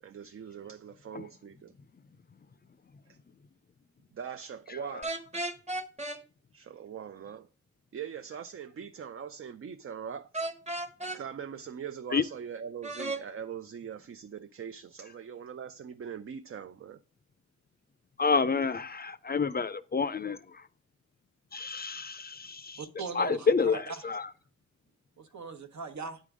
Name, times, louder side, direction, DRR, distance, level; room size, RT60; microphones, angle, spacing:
voice 1, 0.0-1.7 3.1-3.2 4.1-5.1 6.5-7.5 7.9-10.3 11.1-17.0, right 7 dB, 50° right, 0.4 m, -42 dB
sound 1, 5.0-6.2 10.3-11.2 12.8-13.2, right 2 dB, 25° right, 1.0 m, -34 dB
voice 2, 18.2-20.7 21.5-22.9 23.1-24.3, left 5 dB, 35° left, 0.4 m, -29 dB
voice 3, 22.8-23.8 25.2-26.2, right 4 dB, 70° right, 1.0 m, -39 dB
9.0 x 3.8 x 4.7 m
wide cardioid pair, 75°, 29 cm